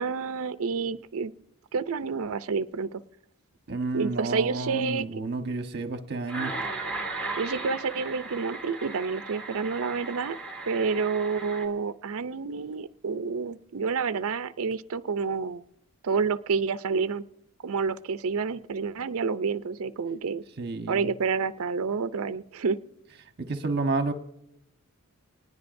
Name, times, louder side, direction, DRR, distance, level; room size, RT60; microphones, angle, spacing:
voice 1, 0.0-1.3 1.7-3.0 3.9-5.1 7.4-10.4 10.7-15.6 16.0-17.2 17.6-20.4 20.9-22.8, right 5 dB, 65° right, 12 dB, 0.5 m, -29 dB
voice 2, 3.7-6.6 20.6-21.1 23.4-24.1, right 3 dB, 50° right, 6 dB, 1.2 m, -30 dB
sound 1, 6.3-11.7, right 3 dB, 5° left, 2.6 m, -36 dB
28.0 x 19.5 x 2.6 m, 0.82 s
head